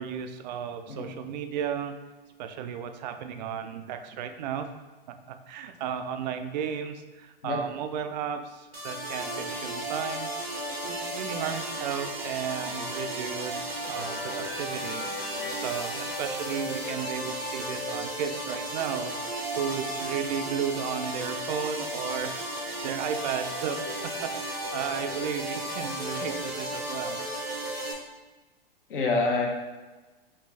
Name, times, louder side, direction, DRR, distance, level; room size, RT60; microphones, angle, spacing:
voice 1, 0.0-2.0 2.4-4.7 5.3-10.3 10.8-22.3 22.6-27.3, right 7 dB, 50° right, 8 dB, 0.4 m, -34 dB
sound 1, 8.7-27.9, right 1 dB, 90° right, 1.1 m, -34 dB
sound 2, 12.2-17.0, left 3 dB, 40° left, 0.9 m, -42 dB
voice 2, 28.9-29.5, left 3 dB, 65° left, 0 dB, 1.0 m, -27 dB
5.3 x 2.4 x 3.3 m, 1.2 s
hypercardioid pair, 110°, 29 cm